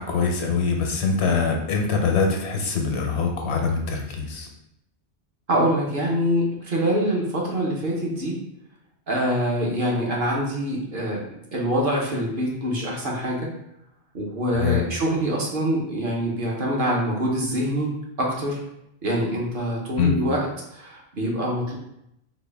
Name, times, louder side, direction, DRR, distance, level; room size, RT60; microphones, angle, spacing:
voice 1, 0.0-4.5 14.6-14.8 20.0-20.2, left 5 dB, 80° left, 2 dB, 1.0 m, -23 dB
voice 2, 5.5-8.4 9.1-13.5 14.1-17.9 18.2-18.6 19.0-21.8, equal, 55° right, -2 dB, 0.9 m, -25 dB
4.0 x 2.2 x 3.3 m, 0.80 s
omnidirectional pair, 1.1 m